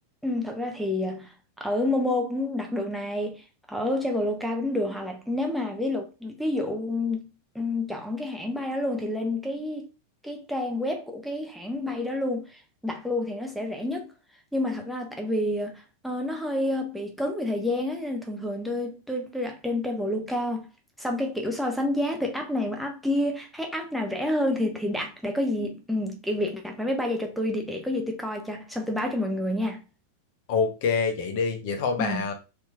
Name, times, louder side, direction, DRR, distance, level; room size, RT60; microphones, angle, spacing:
voice 1, 0.2-7.2 7.5-9.9 10.2-14.1 14.5-20.7 21.0-29.8 32.0-32.2, left 1 dB, ahead, 0.5 m, -29 dB
voice 2, 30.5-32.3, left 5 dB, 45° left, 0.7 m, -26 dB
2.9 x 2.7 x 2.2 m
figure-of-eight pair, 90°, 0 cm